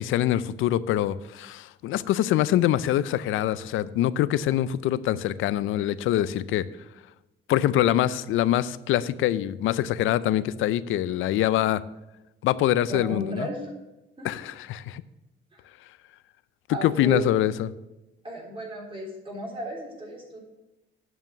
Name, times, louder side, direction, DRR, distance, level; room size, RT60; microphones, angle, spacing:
voice 1, 0.0-6.7 7.5-11.8 12.4-13.5 14.2-15.0 16.8-17.7, left 12 dB, 85° left, 17 dB, 0.5 m, -24 dB
voice 2, 12.9-13.7 14.2-14.4 15.5-15.6 16.7-17.3 18.2-20.4, right 1 dB, 25° right, -2 dB, 3.7 m, -34 dB
9.2 x 5.9 x 6.5 m, 0.98 s
cardioid pair, 90°, 20 cm